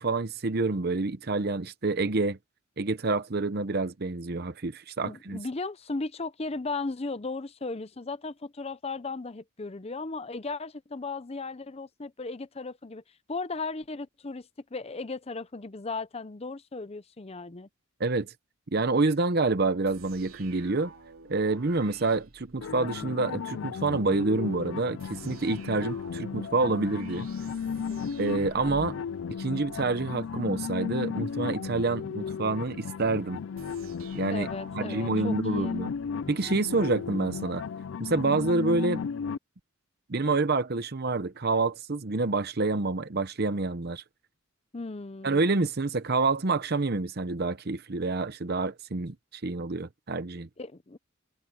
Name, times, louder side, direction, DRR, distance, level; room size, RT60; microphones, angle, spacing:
voice 1, 0.0-2.4 2.8-5.4 18.0-18.3 18.7-20.9 21.3-27.3 28.2-29.0 29.4-33.4 34.1-34.5 34.7-35.9 36.3-37.6 38.0-39.0 40.1-44.0 45.2-50.5, right 3 dB, 50° right, 0.8 m, -27 dB
voice 2, 5.1-13.0 13.3-17.7 27.7-28.1 34.3-35.8 44.7-45.4 50.6-51.0, left 3 dB, 30° left, 0.6 m, -36 dB
sound 1, 19.9-23.1 25.0-30.2 33.6-36.2, right 3 dB, 80° right, 2.9 m, -50 dB
sound 2, 22.6-39.4, left 6 dB, 60° left, 0.4 m, -35 dB
head